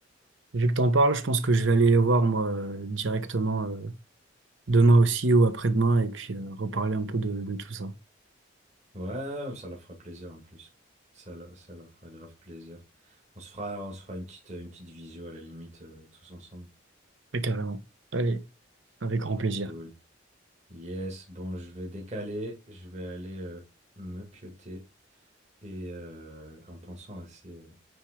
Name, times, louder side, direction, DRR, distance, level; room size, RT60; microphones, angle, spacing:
voice 1, 0.5-3.9 4.7-7.9 17.3-17.8 18.1-18.4 19.0-19.7, right 3 dB, 75° right, 1.0 m, -24 dB
voice 2, 8.9-10.7 11.1-16.7 19.6-19.9 20.7-23.6 24.0-24.8 25.6-27.7, equal, 35° right, 1.9 m, -40 dB
9.1 x 3.6 x 5.0 m
head